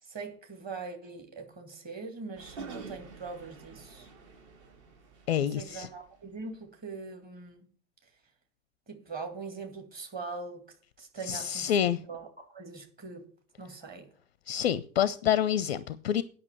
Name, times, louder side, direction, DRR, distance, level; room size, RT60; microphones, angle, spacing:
voice 1, 0.0-4.1 5.4-7.7 8.9-13.3 13.6-14.1, right 4 dB, 20° right, 2.1 m, -42 dB
sound 1, 2.3-6.1, right 4 dB, 45° right, 2.5 m, -48 dB
voice 2, 5.3-5.9 11.3-12.0 14.5-16.2, left 10 dB, 40° left, 0.5 m, -27 dB
9.6 x 5.8 x 7.9 m
figure-of-eight pair, 105°, 47 cm